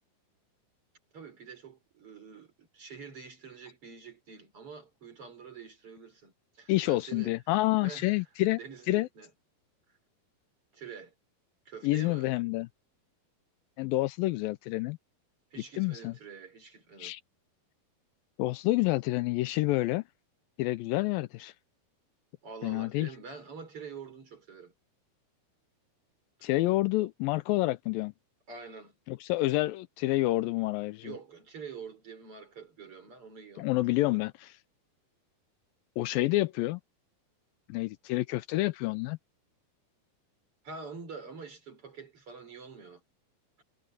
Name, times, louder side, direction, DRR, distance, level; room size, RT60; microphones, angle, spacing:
voice 1, 1.1-7.3 7.8-8.2 8.5-9.3 10.7-11.1 11.7-12.3 15.5-17.1 22.4-24.7 28.5-29.0 29.3-29.4 31.0-34.2 40.6-43.0, right 5 dB, 40° right, 5.3 m, -46 dB
voice 2, 6.7-8.6 8.9-9.1 11.8-12.7 13.8-15.0 15.8-16.1 17.0-17.2 18.4-20.0 20.6-21.5 22.6-23.1 26.4-28.1 29.1-31.1 33.6-34.5 36.0-36.8 37.7-39.2, left 18 dB, 80° left, 2.3 m, -28 dB
omnidirectional pair, 4.2 m